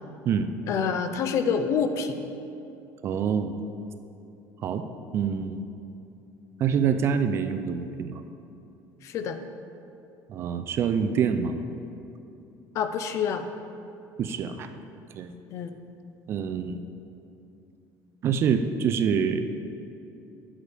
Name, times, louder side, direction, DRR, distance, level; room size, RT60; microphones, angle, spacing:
voice 1, 0.7-2.2 9.0-9.4 12.7-13.5 15.5-15.8, left 6 dB, 40° left, 9 dB, 0.4 m, -27 dB
voice 2, 3.0-3.6 4.6-4.8 5.1-5.6 6.6-8.2 10.3-11.6 14.2-14.7 15.1-15.3 16.3-16.8 18.2-19.4, right 7 dB, 35° right, 9 dB, 0.3 m, -26 dB
8.8 x 8.2 x 3.4 m, 2.7 s
cardioid pair, 180°, 8 cm